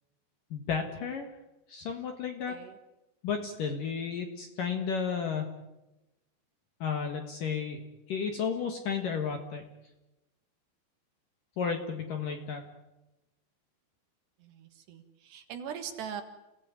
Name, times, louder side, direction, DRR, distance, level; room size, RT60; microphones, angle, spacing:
voice 1, 0.5-1.3 1.7-2.5 3.2-5.5 6.8-7.8 8.1-9.6 11.6-12.6, left 6 dB, 60° left, 5 dB, 2.5 m, -32 dB
voice 2, 14.4-16.2, right 8 dB, 65° right, 7 dB, 3.4 m, -41 dB
29.0 x 18.0 x 9.6 m, 0.99 s
omnidirectional pair, 5.8 m